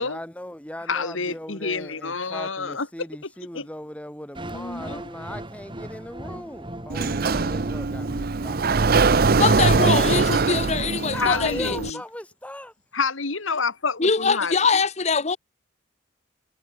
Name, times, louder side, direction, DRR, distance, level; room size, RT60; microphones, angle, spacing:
voice 1, 0.0-8.6 10.8-12.7, left 1 dB, 5° left, 2.6 m, -38 dB
voice 2, 0.9-2.9 3.5-3.7 11.1-12.0 12.9-14.6, left 4 dB, 90° left, 2.1 m, -28 dB
sound 1, 4.3-10.4, right 1 dB, 25° right, 4.7 m, -39 dB
voice 3, 4.5-5.0 9.4-11.8 14.0-15.4, left 5 dB, 35° left, 0.9 m, -23 dB
Sliding door, 6.9-11.9, right 4 dB, 50° right, 0.6 m, -22 dB
head